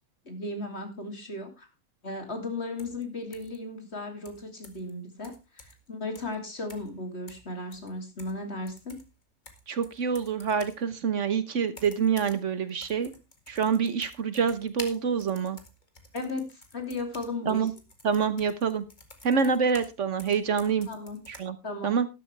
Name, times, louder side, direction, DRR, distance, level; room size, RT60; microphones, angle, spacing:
voice 1, 0.2-1.7 2.0-9.0 16.1-17.6 20.9-21.2 21.6-21.9, left 2 dB, 50° left, 5 dB, 3.0 m, -36 dB
sound 1, 2.8-3.0 3.3-3.6 4.3-4.9 5.2-5.9 6.2-6.4 6.7-7.0 7.3-8.4 8.7-10.8 11.7-12.4 12.7-19.9 20.2-21.4, left 2 dB, 35° left, 2.1 m, -50 dB
voice 2, 9.7-13.1 13.5-15.6 17.5-17.7 18.0-18.8 19.2-20.9 21.3-21.6 21.8-22.1, right 6 dB, 60° right, 13 dB, 1.3 m, -26 dB
13.0 x 12.0 x 3.3 m, 0.26 s
omnidirectional pair, 1.4 m